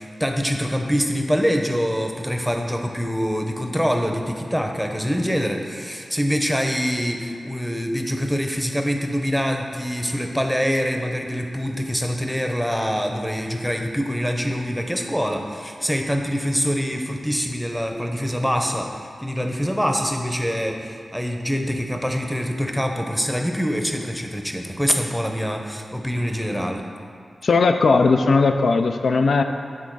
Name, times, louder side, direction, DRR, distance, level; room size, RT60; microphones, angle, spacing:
voice 1, 0.0-26.8, equal, ahead, 3 dB, 0.7 m, -24 dB
voice 2, 27.4-29.4, left 4 dB, 75° left, 6 dB, 0.3 m, -17 dB
9.9 x 3.4 x 4.6 m, 2.4 s
wide cardioid pair, 75°, 0 cm